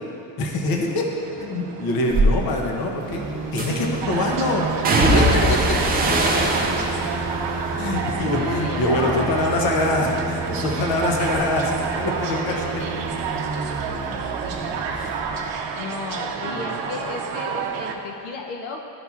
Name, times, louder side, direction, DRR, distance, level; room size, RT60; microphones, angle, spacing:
voice 1, 0.4-1.1 1.4-3.2 3.5-5.6 7.8-13.0 14.9-15.1 16.4-16.8, left 2 dB, 50° left, 1 dB, 0.8 m, -24 dB
sound 1, 0.8-18.0, right 6 dB, 60° right, 0.7 m, -30 dB
sound 2, 2.1-2.3 3.6-4.0 4.8-9.1 9.4-10.0 10.4-13.7 14.0-15.1 15.4-15.5, right 1 dB, 20° right, 0.3 m, -23 dB
sound 3, 3.0-15.8, right 3 dB, 40° right, 1.1 m, -32 dB
voice 2, 8.2-9.4 15.7-18.8, left 3 dB, 80° left, 1 dB, 0.8 m, -32 dB
12.0 x 5.6 x 2.4 m, 2.8 s
cardioid pair, 175°, 48 cm